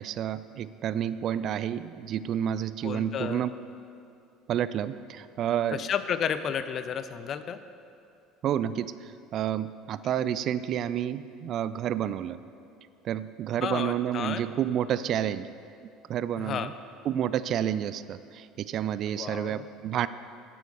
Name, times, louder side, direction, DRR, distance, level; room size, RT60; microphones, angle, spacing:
voice 1, 0.0-3.5 4.5-5.9 8.4-12.4 13.0-15.5 16.1-16.7 17.1-20.1, right 10 dB, 50° right, 15 dB, 0.3 m, -30 dB
voice 2, 2.8-3.4 5.7-7.6 13.6-14.4 16.4-16.7 19.1-19.6, left 8 dB, 45° left, 11 dB, 0.5 m, -32 dB
8.7 x 8.1 x 6.5 m, 2.5 s
figure-of-eight pair, 65°, 0 cm